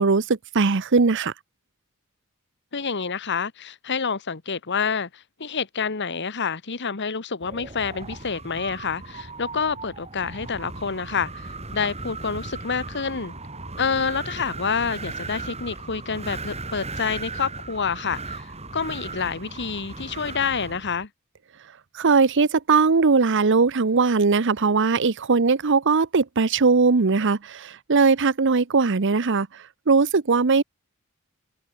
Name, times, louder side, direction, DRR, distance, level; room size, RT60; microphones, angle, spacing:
voice 1, 0.0-1.3 22.0-29.5 29.9-30.6, right 4 dB, 55° right, 0.8 m, -20 dB
voice 2, 2.7-13.3 13.8-18.5 18.7-21.1, left 5 dB, 50° left, 1.3 m, -28 dB
Wind, 7.4-21.0, right 3 dB, 30° right, 5.4 m, -37 dB
head